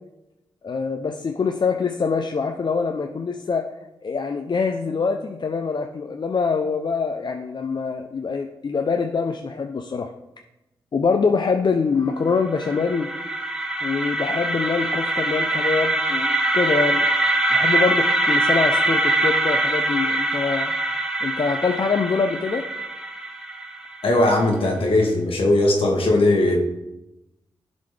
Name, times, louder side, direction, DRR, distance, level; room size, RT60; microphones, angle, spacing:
voice 1, 0.6-3.6 4.0-10.1 10.9-13.1 13.8-17.1 17.5-20.7 21.2-22.6, left 5 dB, 50° left, 4 dB, 0.6 m, -24 dB
sound 1, 12.3-24.3, right 2 dB, 5° right, 1.2 m, -23 dB
voice 2, 24.0-26.6, left 2 dB, 70° left, 1 dB, 1.7 m, -19 dB
11.0 x 4.1 x 3.3 m, 0.94 s
supercardioid pair, 45°, 10 cm